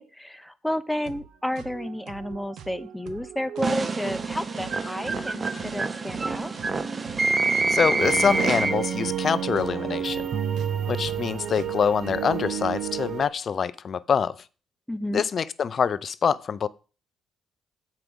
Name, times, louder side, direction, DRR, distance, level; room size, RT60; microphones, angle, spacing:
voice 1, 0.0-6.5 14.9-15.2, left 1 dB, 5° left, 0.7 m, -31 dB
sound 1, 1.0-12.4, right 7 dB, 80° right, 1.0 m, -43 dB
sound 2, 3.6-9.0, right 3 dB, 30° right, 0.8 m, -27 dB
voice 2, 7.7-10.3 10.9-14.4 15.1-16.7, left 6 dB, 50° left, 0.5 m, -25 dB
sound 3, 8.0-13.3, right 9 dB, 60° right, 0.6 m, -30 dB
7.6 x 5.2 x 6.2 m
cardioid pair, 90°, 0 cm